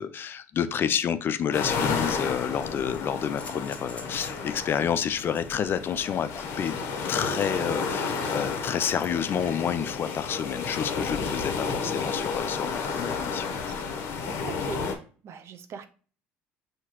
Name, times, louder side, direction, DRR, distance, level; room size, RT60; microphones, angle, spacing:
voice 1, 0.0-6.7 7.1-13.5, left 8 dB, 45° left, 13 dB, 0.4 m, -29 dB
sound 1, 1.3-1.4 2.4-4.5 5.3-10.3 11.0-11.3 13.0-13.1, left 3 dB, 25° left, 0.9 m, -49 dB
sound 2, 1.5-15.0, left 5 dB, 65° left, 0.8 m, -32 dB
Acoustic guitar, 7.2-10.6, right 6 dB, 35° right, 1.0 m, -44 dB
voice 2, 14.4-14.8 15.2-15.9, right 7 dB, 55° right, 9 dB, 0.6 m, -41 dB
5.7 x 2.8 x 2.9 m, 0.39 s
supercardioid pair, 90°, 5 cm